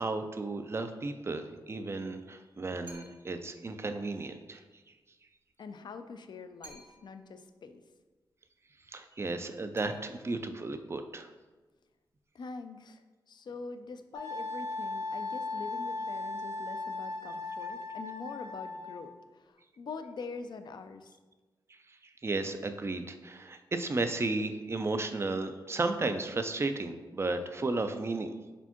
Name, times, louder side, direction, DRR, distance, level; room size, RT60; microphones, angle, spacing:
voice 1, 0.0-4.6 8.9-11.3 21.7-21.8 22.2-28.3, right 3 dB, 30° right, 8 dB, 0.4 m, -34 dB
sound 1, 2.9-3.5 6.6-7.3 9.8-10.6, right 2 dB, 75° right, 1.4 m, -54 dB
voice 2, 5.6-7.8 12.3-21.1, left 4 dB, 60° left, 8 dB, 0.4 m, -44 dB
Wind instrument woodwind instrument, 14.2-19.0, left 3 dB, 50° right, 1.4 m, -37 dB
4.2 x 3.5 x 2.9 m, 1.3 s
cardioid pair, 55°, 9 cm